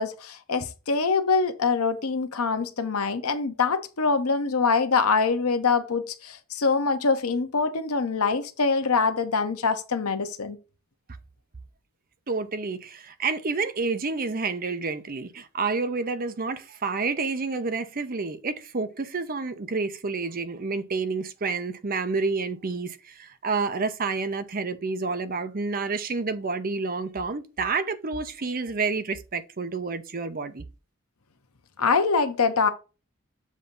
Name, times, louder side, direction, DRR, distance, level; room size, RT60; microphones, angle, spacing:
voice 1, 0.0-10.6 31.8-32.7, left 4 dB, 80° left, 0.9 m, -24 dB
voice 2, 12.3-30.7, right 4 dB, 40° right, 0.7 m, -29 dB
7.4 x 2.8 x 5.3 m
head